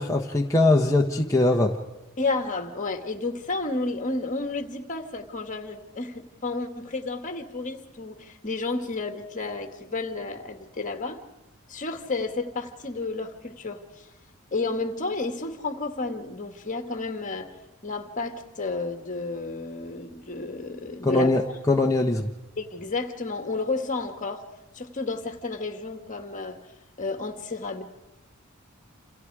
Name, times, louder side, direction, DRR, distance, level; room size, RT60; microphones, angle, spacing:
voice 1, 0.0-1.7 21.0-21.4 21.7-22.3, left 2 dB, 15° left, -1 dB, 1.1 m, -21 dB
voice 2, 2.2-11.2 11.7-13.8 14.5-17.5 17.8-21.3 22.6-24.4 24.8-26.6 27.0-27.8, left 3 dB, 35° left, 6 dB, 2.0 m, -31 dB
28.5 x 28.0 x 4.9 m, 1.0 s
head